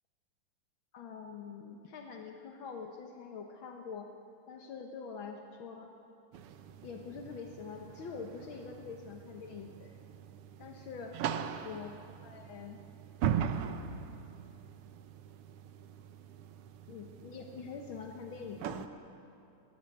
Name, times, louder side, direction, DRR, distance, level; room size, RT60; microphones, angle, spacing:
voice 1, 0.9-4.1 4.5-5.9 6.8-10.0 10.6-11.2 11.6-12.8 16.9-18.9, left 5 dB, 65° left, 3 dB, 1.2 m, -45 dB
sound 1, 6.3-18.9, right 8 dB, 85° right, 1.2 m, -40 dB
23.0 x 19.5 x 7.9 m, 2.7 s
omnidirectional pair, 3.8 m